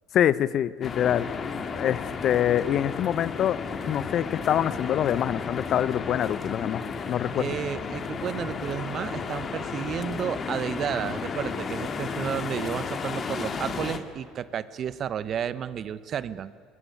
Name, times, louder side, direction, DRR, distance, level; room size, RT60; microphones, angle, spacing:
voice 1, 0.1-1.3 1.7-7.6, left 10 dB, 55° left, 18 dB, 0.8 m, -25 dB
sound 1, 0.8-14.0, left 5 dB, 40° left, 2.1 m, -33 dB
voice 2, 7.4-16.5, right 8 dB, 50° right, 16 dB, 1.1 m, -32 dB
21.0 x 21.0 x 9.7 m, 2.4 s
supercardioid pair, 85°, 0 cm